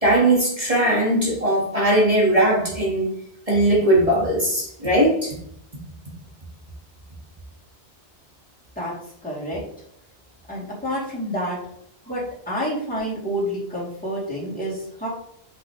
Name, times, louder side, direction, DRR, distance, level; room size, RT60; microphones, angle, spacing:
voice 1, 0.0-3.1 3.5-5.3, right 1 dB, 30° right, -5 dB, 1.8 m, -19 dB
voice 2, 9.2-9.6 10.5-11.6 12.1-15.1, equal, 10° left, -7 dB, 2.7 m, -28 dB
7.3 x 5.6 x 3.1 m, 0.70 s
omnidirectional pair, 1.1 m